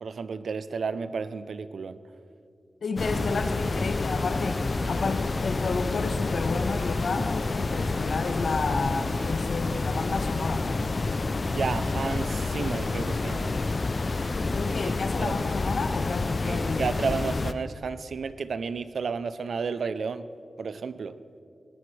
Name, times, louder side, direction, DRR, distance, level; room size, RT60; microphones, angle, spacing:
voice 1, 0.0-2.0 4.8-5.0 11.5-13.5 15.2-15.4 16.4-20.3 20.6-21.2, right 5 dB, 80° right, 13 dB, 0.6 m, -32 dB
voice 2, 2.8-4.6 4.9-10.7 14.5-17.2, left 4 dB, 80° left, 6 dB, 1.2 m, -31 dB
sound 1, 3.0-17.5, left 3 dB, 45° left, 0.5 m, -28 dB
20.0 x 18.0 x 3.3 m, 2.5 s
wide cardioid pair, 80°, 0 cm